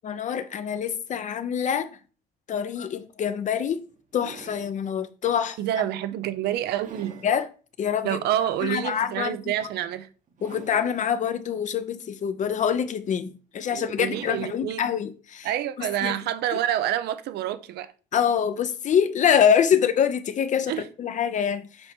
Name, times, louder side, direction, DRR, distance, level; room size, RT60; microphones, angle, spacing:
voice 1, 0.0-1.9 2.5-3.8 4.1-5.6 7.2-7.5 7.8-8.2 8.6-9.5 10.4-15.5 15.8-16.2 18.1-21.9, left 8 dB, 45° left, 0.7 m, -25 dB
sound 1, 3.0-3.1 3.7-4.8 5.4-5.6 6.2-7.4 7.9-8.0 9.5-9.9 10.3-11.0 12.2-13.1 14.0-14.7 16.0-16.1, right 5 dB, 50° right, 1.1 m, -46 dB
voice 2, 5.6-7.2 8.0-10.1 13.7-14.9 15.4-17.9 20.7-20.9, right 11 dB, 75° right, 0.7 m, -28 dB
6.9 x 4.2 x 3.6 m
cardioid pair, 110°, 17 cm